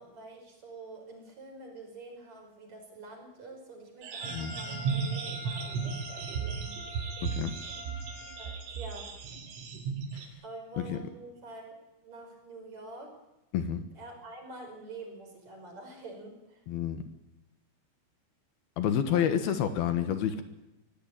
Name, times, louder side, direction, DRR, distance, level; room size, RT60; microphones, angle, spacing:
voice 1, 0.0-6.8 8.4-9.1 10.4-11.8 12.0-13.2 13.9-16.6 19.0-19.2, right 2 dB, 35° right, 3 dB, 6.0 m, -47 dB
sound 1, 4.0-10.3, right 5 dB, 75° right, 5.4 m, -35 dB
Trumpet, 4.2-8.6, left 2 dB, 20° left, 2.5 m, -47 dB
voice 2, 16.7-17.0 18.8-20.4, left 9 dB, 65° left, 9 dB, 2.6 m, -29 dB
23.5 x 17.5 x 8.9 m, 0.96 s
omnidirectional pair, 5.9 m